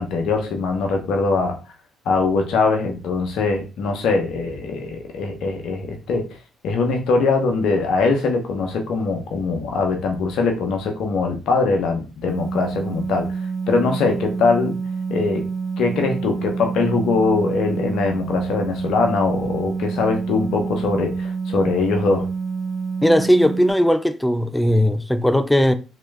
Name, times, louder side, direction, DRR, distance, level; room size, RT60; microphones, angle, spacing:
voice 1, 0.0-1.6 2.0-6.3 6.6-13.3 13.7-14.8 15.1-15.4 15.8-22.3, left 4 dB, 70° left, 0.9 m, -22 dB
sound 1, 12.3-23.7, right 5 dB, 70° right, 0.7 m, -27 dB
voice 2, 23.0-25.7, equal, 5° left, 0.4 m, -18 dB
3.1 x 2.9 x 3.5 m
hypercardioid pair, 55°, 0 cm